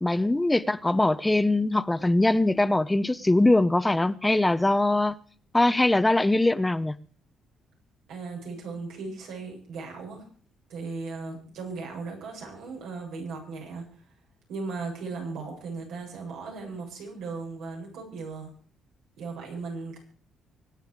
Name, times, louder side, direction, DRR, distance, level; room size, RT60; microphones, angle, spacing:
voice 1, 0.0-5.2 5.5-7.0, left 2 dB, 15° left, 0.8 m, -22 dB
voice 2, 8.1-10.3 10.7-14.0 14.5-18.5 19.2-20.0, right 4 dB, 90° right, 7.8 m, -37 dB
24.5 x 9.1 x 4.9 m
cardioid pair, 90°, 0 cm